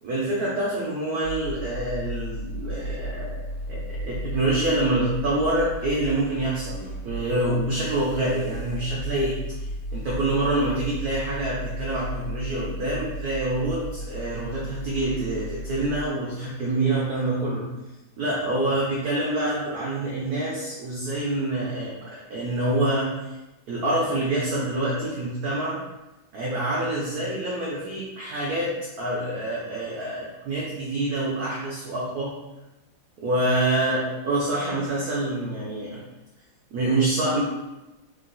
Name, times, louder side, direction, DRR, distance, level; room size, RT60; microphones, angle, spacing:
voice 1, 0.0-3.4 3.7-9.4 9.9-17.7 18.2-23.4 23.7-25.8 26.3-32.4 33.2-36.0 36.7-37.4, right 1 dB, 90° right, -5 dB, 0.8 m, -26 dB
sound 1, 1.2-16.1, equal, 90° left, 1.6 m, -35 dB
3.7 x 2.3 x 2.5 m, 1.0 s
omnidirectional pair, 2.4 m